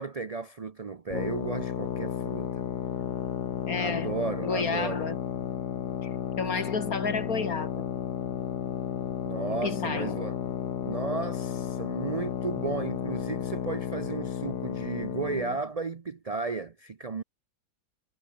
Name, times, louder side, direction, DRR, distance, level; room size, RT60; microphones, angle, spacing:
voice 1, 0.0-2.6 3.8-5.1 9.2-10.4 10.8-17.2, right 4 dB, 65° right, 0.3 m, -34 dB
sound 1, 1.1-15.6, left 8 dB, 80° left, 1.9 m, -33 dB
voice 2, 3.7-4.1 4.4-5.2 6.4-7.9 9.6-10.2, left 4 dB, 60° left, 3.2 m, -31 dB
omnidirectional pair, 1.7 m